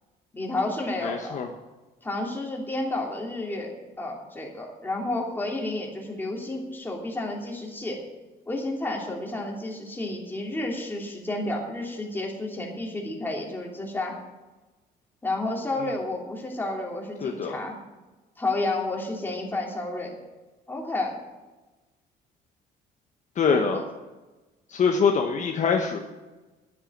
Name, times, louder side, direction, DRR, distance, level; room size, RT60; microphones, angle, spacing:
voice 1, 0.3-1.4 2.0-3.7 4.0-8.0 8.5-14.1 15.2-17.7 18.4-20.2 20.7-21.2 23.5-23.8, left 2 dB, 10° left, -1 dB, 2.9 m, -31 dB
voice 2, 1.0-1.5 17.2-17.6 23.4-23.8 24.7-26.0, left 5 dB, 45° left, 2 dB, 1.1 m, -24 dB
9.9 x 8.0 x 8.5 m, 1.2 s
cardioid pair, 110°, 17 cm